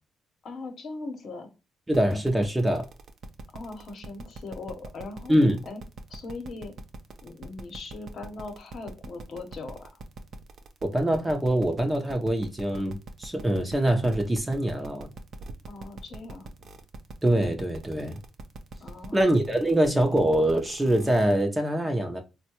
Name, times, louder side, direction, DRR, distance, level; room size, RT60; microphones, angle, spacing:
voice 1, 0.4-1.5 3.5-5.3 5.6-5.8 6.1-6.7 7.2-9.9 15.7-16.5 18.8-19.2, left 3 dB, 55° left, 0.9 m, -39 dB
voice 2, 1.9-2.9 5.3-5.6 10.8-15.1 17.2-18.2 19.1-22.2, right 1 dB, 15° right, 0.6 m, -24 dB
sound 1, 1.9-21.4, right 3 dB, 55° right, 0.5 m, -43 dB
3.6 x 2.2 x 2.8 m
cardioid pair, 90°, 0 cm